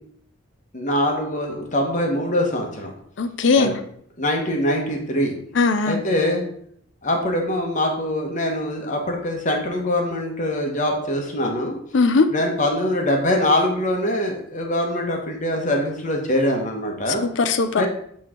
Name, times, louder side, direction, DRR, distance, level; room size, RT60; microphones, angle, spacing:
voice 1, 0.7-2.9 3.5-3.7 4.2-5.3 5.9-6.4 7.0-11.8 12.3-17.2 17.7-17.9, left 1 dB, 40° left, 2 dB, 1.1 m, -23 dB
voice 2, 3.2-3.8 5.6-6.0 11.9-12.3 17.2-17.9, left 4 dB, 65° left, 9 dB, 0.5 m, -19 dB
8.4 x 3.2 x 3.7 m, 0.66 s
head